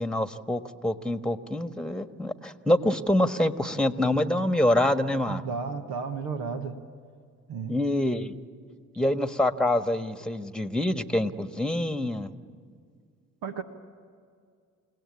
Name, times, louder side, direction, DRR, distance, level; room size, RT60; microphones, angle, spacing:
voice 1, 0.0-5.4 7.7-8.3 9.0-12.3, left 1 dB, ahead, 9 dB, 1.4 m, -26 dB
voice 2, 5.3-6.8 7.5-7.7 13.4-13.6, right 5 dB, 80° right, 6 dB, 1.4 m, -33 dB
29.5 x 17.5 x 8.6 m, 2.1 s
hypercardioid pair, 55°, 35 cm